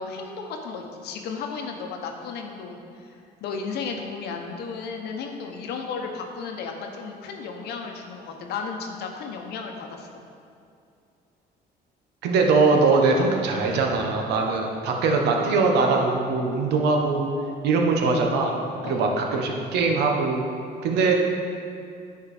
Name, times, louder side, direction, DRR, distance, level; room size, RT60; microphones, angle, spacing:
voice 1, 0.0-10.1 18.8-19.0, left 5 dB, 75° left, 3 dB, 1.0 m, -34 dB
voice 2, 12.2-17.3 17.6-18.5 18.9-20.4 20.8-21.1, right 4 dB, 80° right, 1 dB, 1.2 m, -21 dB
9.5 x 4.7 x 5.0 m, 2.5 s
cardioid pair, 110°, 17 cm